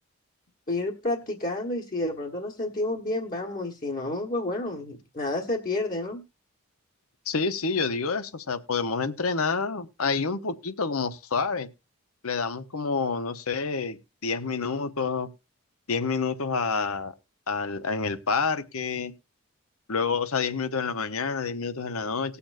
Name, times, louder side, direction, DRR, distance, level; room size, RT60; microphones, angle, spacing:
voice 1, 0.7-6.2, left 2 dB, 40° left, 1 dB, 1.4 m, -30 dB
voice 2, 7.3-11.7 12.2-15.3 15.9-17.1 17.5-19.1 19.9-22.4, left 4 dB, 75° left, 12 dB, 0.9 m, -28 dB
19.5 x 7.0 x 2.5 m, 0.26 s
head